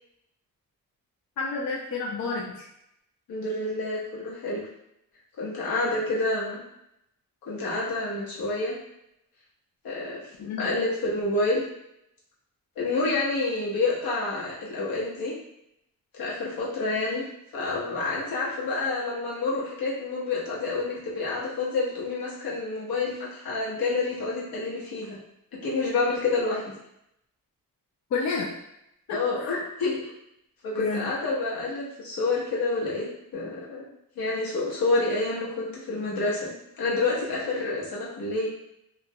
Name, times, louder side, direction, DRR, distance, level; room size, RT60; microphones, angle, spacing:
voice 1, 1.4-2.7 10.4-10.7 28.1-28.5 29.1-29.5 30.8-31.0, left 4 dB, 55° left, -2 dB, 0.4 m, -30 dB
voice 2, 3.3-4.7 5.4-6.6 7.5-8.7 9.8-11.6 12.8-15.3 16.1-17.2 17.5-25.2 25.5-26.6 29.1-30.1 30.6-33.9 34.2-38.5, left 3 dB, 85° left, -6 dB, 0.9 m, -28 dB
2.4 x 2.0 x 2.6 m, 0.80 s
cardioid pair, 95°, 35 cm